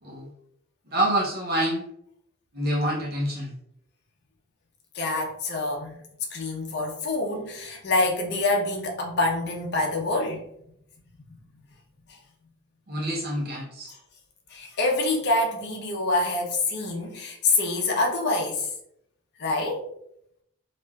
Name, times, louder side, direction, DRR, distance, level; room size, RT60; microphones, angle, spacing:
voice 1, 0.9-1.8 2.5-3.5 12.9-13.9, right 1 dB, 45° right, -2 dB, 0.6 m, -27 dB
voice 2, 4.9-6.0 6.3-10.4 12.1-12.2 14.5-18.7 19.4-19.8, left 2 dB, 50° left, 0 dB, 0.6 m, -26 dB
3.2 x 2.5 x 2.2 m, 0.74 s
head